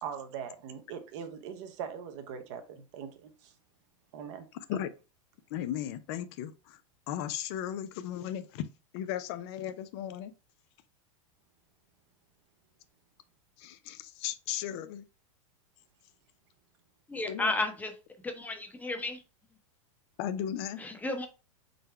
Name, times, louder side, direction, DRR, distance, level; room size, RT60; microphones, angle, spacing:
voice 1, 0.0-3.5 4.1-4.4, right 7 dB, 60° right, 0.8 m, -41 dB
voice 2, 5.5-6.8 7.1-8.7 8.9-10.3 13.6-15.0 17.3-17.5 20.2-20.8, left 10 dB, 55° left, 0.4 m, -36 dB
voice 3, 17.1-17.9 18.2-19.2 20.8-21.3, left 2 dB, 10° left, 0.8 m, -33 dB
3.9 x 2.1 x 4.3 m
hypercardioid pair, 110°, 17 cm